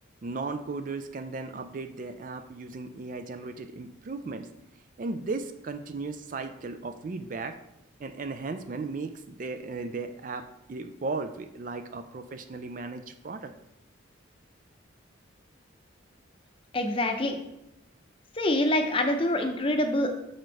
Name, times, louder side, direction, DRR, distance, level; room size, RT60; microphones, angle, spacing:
voice 1, 0.2-4.5 5.0-7.6 8.0-13.5, right 3 dB, 40° right, 8 dB, 0.4 m, -36 dB
voice 2, 16.7-17.4 18.3-20.1, left 1 dB, 25° left, 5 dB, 0.6 m, -25 dB
6.4 x 4.3 x 4.6 m, 0.83 s
head